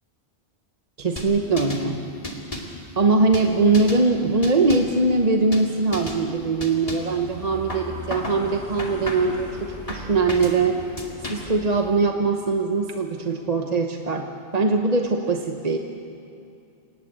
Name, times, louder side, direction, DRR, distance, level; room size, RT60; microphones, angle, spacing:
voice 1, 1.0-2.0 3.0-10.8 11.3-14.3 14.5-15.8, right 3 dB, 40° right, 3 dB, 1.1 m, -21 dB
sound 1, 1.2-1.9 2.2-2.8 3.3-4.0 4.4-5.0 5.5-5.7 5.9-6.2 6.6-7.2 7.7-8.4 8.8-9.4 9.9-10.6 11.0-11.6, left 1 dB, 35° left, 2.7 m, -33 dB
sound 2, 7.0-12.1, right 1 dB, 80° right, 4.8 m, -40 dB
29.0 x 18.5 x 8.2 m, 2.7 s
omnidirectional pair, 1.1 m